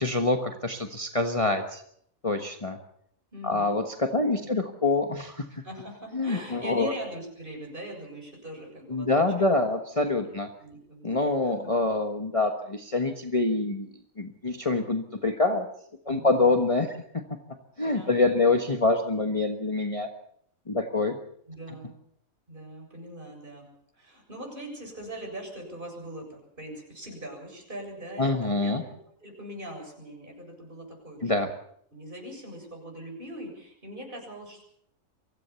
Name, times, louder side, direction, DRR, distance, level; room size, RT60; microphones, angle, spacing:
voice 1, 0.0-1.8 2.2-2.8 3.4-5.4 6.1-6.9 8.9-10.5 11.0-13.9 14.2-15.7 16.1-17.0 17.8-20.1 20.7-21.2 28.2-28.8 31.2-31.5, left 3 dB, 25° left, 4 dB, 1.4 m, -25 dB
voice 2, 3.3-3.8 4.3-4.6 5.5-9.6 10.3-11.5 16.1-16.7 17.9-18.5 21.5-22.0 22.5-23.7 23.9-31.4 31.9-34.6, right 1 dB, 40° right, 1 dB, 7.6 m, -42 dB
24.0 x 16.0 x 7.1 m, 0.68 s
omnidirectional pair, 1.4 m